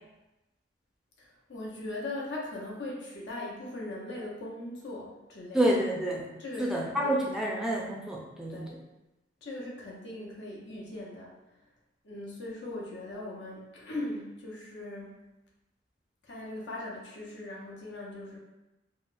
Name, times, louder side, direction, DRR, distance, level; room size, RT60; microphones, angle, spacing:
voice 1, 1.2-5.7 6.4-7.2 8.5-8.7 9.4-11.3 12.0-15.3 16.2-18.4, left 2 dB, 70° left, -3 dB, 0.7 m, -40 dB
voice 2, 5.5-6.3 6.6-8.7, right 1 dB, 5° right, -3 dB, 0.4 m, -28 dB
3.8 x 2.1 x 2.5 m, 0.99 s
head